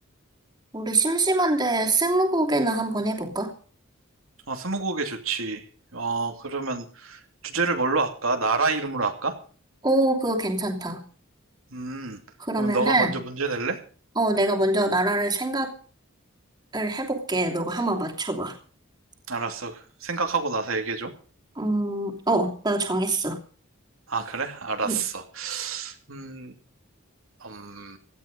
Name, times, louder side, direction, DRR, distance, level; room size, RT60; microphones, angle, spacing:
voice 1, 0.7-3.5 9.8-11.0 12.4-13.2 14.2-15.7 16.7-18.5 21.6-23.4 24.8-25.0, right 2 dB, 20° right, 1 dB, 2.9 m, -24 dB
voice 2, 4.5-5.6 5.9-9.3 11.7-12.2 12.6-13.8 19.3-21.1 24.1-26.5 27.4-28.0, right 4 dB, 80° right, 5 dB, 2.6 m, -28 dB
17.0 x 13.0 x 5.2 m, 0.41 s
head